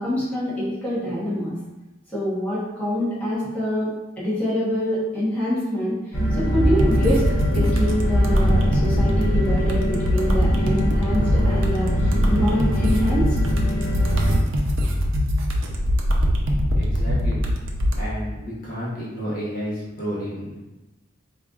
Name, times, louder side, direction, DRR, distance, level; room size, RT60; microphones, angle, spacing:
voice 1, 0.0-1.5 2.1-3.9 4.2-7.2 7.5-13.3, equal, 10° left, -10 dB, 1.0 m, -25 dB
sound 1, 6.1-14.4, equal, 80° left, 1.0 m, -23 dB
sound 2, 6.6-18.0, equal, 85° right, 0.5 m, -22 dB
voice 2, 16.8-17.4 18.0-20.6, equal, 50° left, -7 dB, 0.8 m, -31 dB
4.4 x 2.4 x 2.4 m, 1.0 s
head